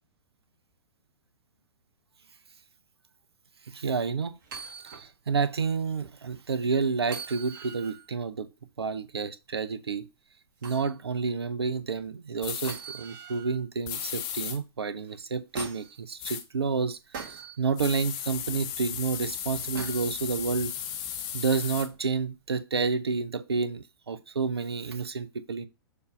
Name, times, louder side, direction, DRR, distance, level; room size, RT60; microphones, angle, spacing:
voice 1, 3.7-4.3 5.0-8.5 8.8-10.1 10.6-17.0 17.6-20.7 21.3-25.7, right 4 dB, 75° right, 0.7 m, -29 dB
sound 1, 4.4-5.1 5.5-5.6 7.0-8.1 10.6-10.9 12.6-13.6 15.1-16.0 17.1-17.6 19.7-20.1 21.9-22.0, right 5 dB, 50° right, 1.6 m, -41 dB
sound 2, 12.4-12.8 13.9-14.6 16.2-16.4 17.8-21.9, left 9 dB, 30° left, 0.8 m, -35 dB
6.6 x 2.7 x 5.3 m
figure-of-eight pair, 110°, 13 cm